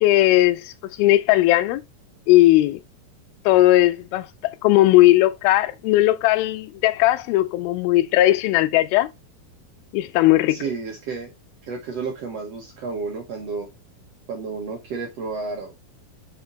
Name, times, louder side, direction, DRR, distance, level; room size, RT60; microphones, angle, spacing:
voice 1, 0.0-1.8 2.3-2.8 3.5-4.3 4.6-9.1 9.9-10.6, left 16 dB, 90° left, 2.4 m, -17 dB
voice 2, 10.5-11.3 11.6-13.7 14.3-15.8, right 4 dB, 65° right, 1.6 m, -31 dB
5.7 x 4.4 x 3.8 m
omnidirectional pair, 4.2 m